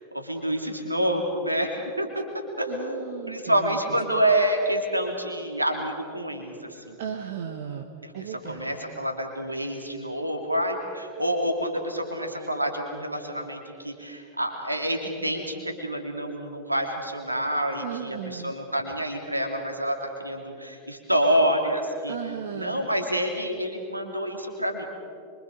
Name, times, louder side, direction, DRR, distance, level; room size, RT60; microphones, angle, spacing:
voice 1, 0.1-2.2 2.6-7.0 8.0-22.2 22.5-24.8, right 1 dB, 85° right, 3 dB, 2.9 m, -28 dB
voice 2, 2.7-3.8 7.0-8.8 17.8-18.5 22.1-22.8, right 8 dB, 55° right, 4 dB, 1.4 m, -35 dB
26.5 x 24.0 x 5.3 m, 2.5 s
figure-of-eight pair, 90°, 0 cm